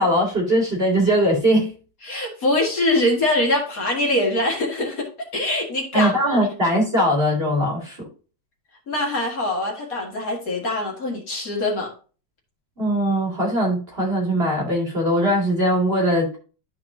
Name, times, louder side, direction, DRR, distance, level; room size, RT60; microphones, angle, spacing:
voice 1, 0.0-1.7 5.9-8.1 12.8-16.4, equal, 30° right, 2.6 m, -20 dB
voice 2, 2.0-5.1 5.3-6.4 8.9-11.9, left 1 dB, 50° left, 2.3 m, -23 dB
12.5 x 4.2 x 2.7 m
omnidirectional pair, 2.0 m